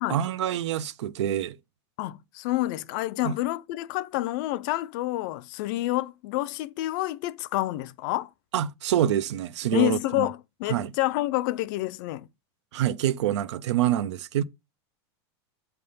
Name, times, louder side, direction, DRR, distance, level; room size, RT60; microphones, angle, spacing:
voice 1, 0.1-1.6 3.2-3.4 8.5-10.3 10.7-10.9 12.7-14.4, right 11 dB, 85° right, 0.6 m, -26 dB
voice 2, 2.0-8.3 9.7-12.3, left 17 dB, 45° left, 0.5 m, -28 dB
7.7 x 3.5 x 5.4 m
supercardioid pair, 165°, 14 cm